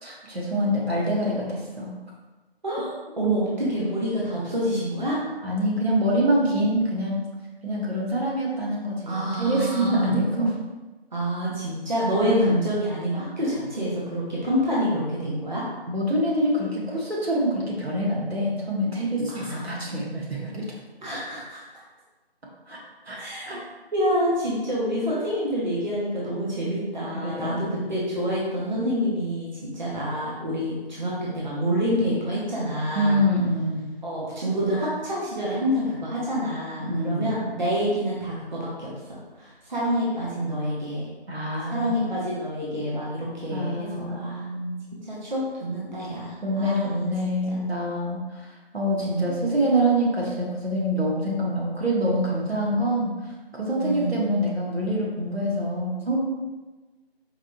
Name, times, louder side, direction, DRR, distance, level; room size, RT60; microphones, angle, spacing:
voice 1, 0.0-2.0 5.4-7.2 7.6-10.5 12.2-12.5 15.9-20.6 22.7-22.8 23.1-23.2 23.4-23.6 27.2-27.7 32.9-33.9 36.8-37.3 41.3-42.1 43.5-44.8 46.4-53.1 53.5-56.2, equal, 80° right, -4 dB, 1.2 m, -25 dB
voice 2, 3.2-5.2 9.1-10.1 11.1-15.6 19.3-19.7 21.0-21.6 23.2-23.5 23.9-33.2 34.0-38.9 39.4-41.1 41.7-44.4 45.1-47.0 47.5-47.6 49.0-49.3 53.8-54.2, equal, 45° right, -7 dB, 0.9 m, -27 dB
4.7 x 2.7 x 2.3 m, 1.2 s
figure-of-eight pair, 170°, 31 cm